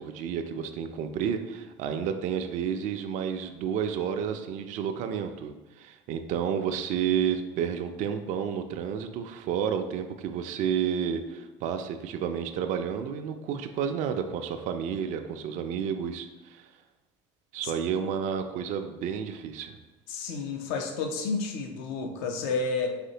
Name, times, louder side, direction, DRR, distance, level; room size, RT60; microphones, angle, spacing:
voice 1, 0.0-16.7 17.5-19.7, right 8 dB, 55° right, 6 dB, 0.4 m, -31 dB
voice 2, 20.1-22.9, left 4 dB, 70° left, 4 dB, 0.6 m, -30 dB
4.1 x 3.1 x 2.8 m, 1.1 s
hypercardioid pair, 85°, 15 cm